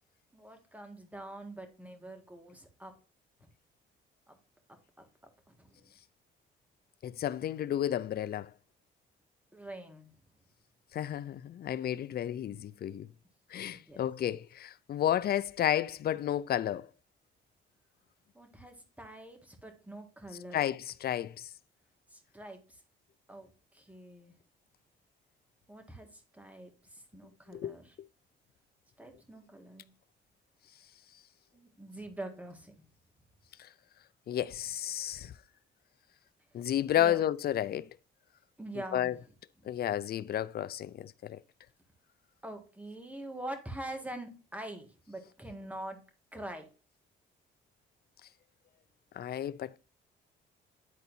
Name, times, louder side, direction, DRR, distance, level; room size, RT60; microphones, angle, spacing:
voice 1, 0.3-2.9 4.3-4.4 4.7-5.1 5.6-5.8 9.5-10.1 13.7-14.1 18.3-20.6 22.1-22.8 23.3-24.4 25.7-28.0 29.0-29.9 31.5-32.9 36.5-36.7 37.0-37.2 38.6-39.2 39.6-39.7 42.4-46.0 46.3-46.7, right 1 dB, 5° right, 1.7 m, -45 dB
voice 2, 7.0-8.5 10.9-13.1 13.5-16.9 20.5-21.5 27.5-27.7 34.3-35.3 36.5-37.9 38.9-39.1 39.7-41.4 49.2-49.8, left 11 dB, 50° left, 0.5 m, -32 dB
10.5 x 4.1 x 2.6 m
cardioid pair, 90°, 20 cm